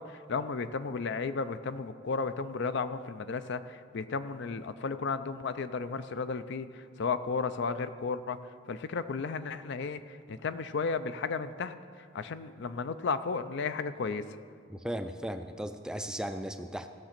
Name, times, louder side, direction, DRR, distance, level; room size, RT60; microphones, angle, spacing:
voice 1, 0.0-8.4 8.7-11.7 12.1-14.2, left 4 dB, 60° left, 12 dB, 0.4 m, -34 dB
voice 2, 14.7-16.9, equal, 5° right, 8 dB, 0.3 m, -36 dB
16.0 x 6.7 x 5.9 m, 2.2 s
head